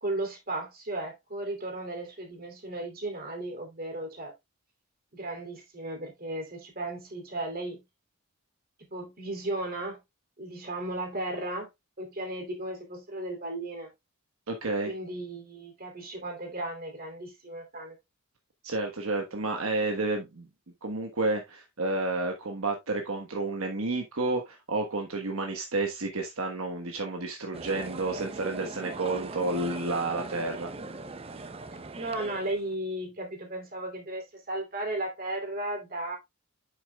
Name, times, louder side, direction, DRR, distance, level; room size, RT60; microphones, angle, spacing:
voice 1, 0.0-4.3 5.1-7.8 8.8-10.0 10.4-11.7 12.0-13.9 14.9-18.0 31.9-36.2, right 1 dB, 40° right, 2.8 m, -35 dB
voice 2, 14.5-14.9 18.6-20.5 20.8-30.7, right 2 dB, 70° right, 1.3 m, -30 dB
sound 1, 27.5-32.7, right 3 dB, 25° right, 0.6 m, -40 dB
8.8 x 7.1 x 2.3 m
head